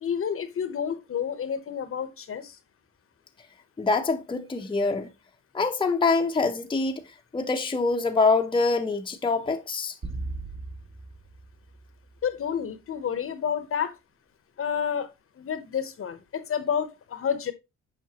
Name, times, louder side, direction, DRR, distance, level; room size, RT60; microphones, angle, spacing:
voice 1, 0.0-2.6 12.2-13.9 14.6-15.1 15.4-17.5, left 7 dB, 45° left, 0.9 m, -29 dB
voice 2, 3.8-5.1 5.5-7.0 7.3-9.9, left 3 dB, 15° left, 0.7 m, -25 dB
sound 1, 10.0-12.5, right 3 dB, 50° right, 2.2 m, -38 dB
7.5 x 5.0 x 2.9 m
cardioid pair, 90°, 30 cm